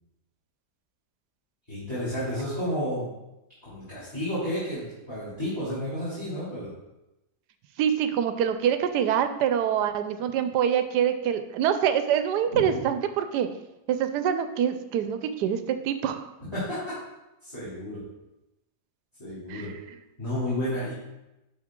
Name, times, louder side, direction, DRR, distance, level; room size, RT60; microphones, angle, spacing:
voice 1, 1.7-3.1 3.6-6.7 12.5-12.6 16.5-16.8 17.4-18.0 19.2-19.7 20.2-20.9, equal, 15° left, -12 dB, 2.7 m, -31 dB
voice 2, 7.8-13.5 13.9-16.3 19.5-19.7, right 9 dB, 90° right, 9 dB, 1.2 m, -25 dB
10.5 x 4.2 x 3.7 m, 0.95 s
omnidirectional pair, 1.7 m